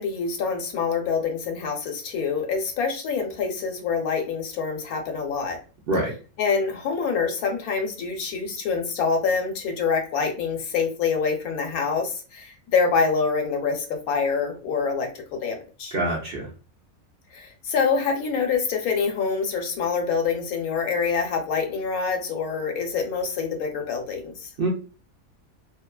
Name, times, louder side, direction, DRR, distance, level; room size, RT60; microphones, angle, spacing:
voice 1, 0.0-5.6 6.4-16.0 17.3-24.5, left 5 dB, 85° left, 3 dB, 1.1 m, -26 dB
voice 2, 15.9-16.5 24.6-24.7, right 2 dB, 60° right, -2 dB, 0.6 m, -25 dB
2.7 x 2.2 x 2.3 m, 0.34 s
omnidirectional pair, 1.5 m